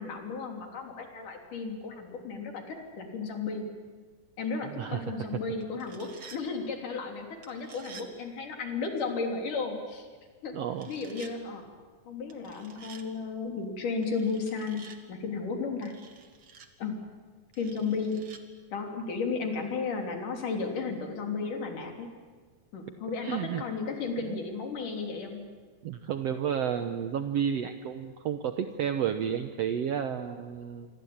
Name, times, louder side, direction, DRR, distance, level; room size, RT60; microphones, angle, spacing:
voice 1, 0.0-3.7 4.4-10.1 10.4-10.5 10.9-11.6 12.1-14.8 15.1-15.9 16.8-17.0 17.6-18.3 18.7-22.1 22.7-25.4, left 4 dB, 75° left, 3 dB, 5.0 m, -34 dB
voice 2, 4.7-5.4 10.5-10.9 23.2-23.6 24.2-24.4 25.8-30.9, right 8 dB, 65° right, 8 dB, 1.9 m, -31 dB
sound 1, 5.6-6.4 7.4-8.1 10.7-11.3 12.3-13.1 14.0-15.0 15.8-16.7 17.5-18.4, right 6 dB, 45° right, 2.5 m, -50 dB
27.5 x 24.5 x 8.8 m, 1.5 s
omnidirectional pair, 3.7 m